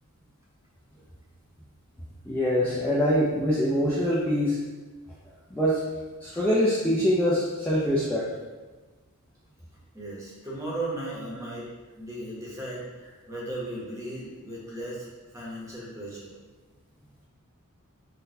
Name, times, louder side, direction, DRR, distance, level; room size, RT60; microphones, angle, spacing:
voice 1, 2.2-4.6 5.5-5.8 6.2-8.3, equal, 10° left, -8 dB, 0.3 m, -24 dB
voice 2, 9.9-15.1 15.3-16.3, right 1 dB, 15° right, -6 dB, 0.7 m, -36 dB
3.9 x 2.1 x 2.6 m, 1.2 s
head